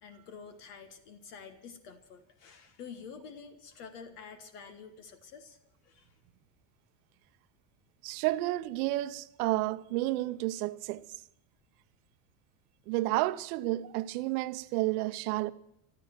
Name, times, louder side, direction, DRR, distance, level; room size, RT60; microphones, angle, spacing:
voice 1, 0.0-5.6 5.8-6.1, left 6 dB, 75° left, 1.5 m, -48 dB
voice 2, 8.0-11.1 12.9-15.5, right 17 dB, 70° right, 0.8 m, -31 dB
15.0 x 12.5 x 7.5 m
hypercardioid pair, 85°, 46 cm